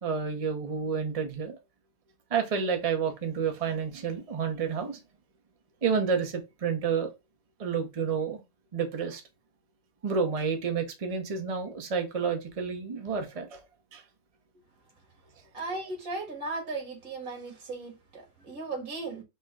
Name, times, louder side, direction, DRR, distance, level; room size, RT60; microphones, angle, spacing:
voice 1, 0.0-1.6 2.3-5.0 5.8-7.1 7.6-8.4 8.7-9.2 10.0-13.6 13.9-14.0, right 6 dB, 30° right, 0.8 m, -30 dB
voice 2, 15.5-19.2, right 3 dB, 85° right, 2.1 m, -36 dB
4.4 x 2.2 x 4.7 m
omnidirectional pair, 1.5 m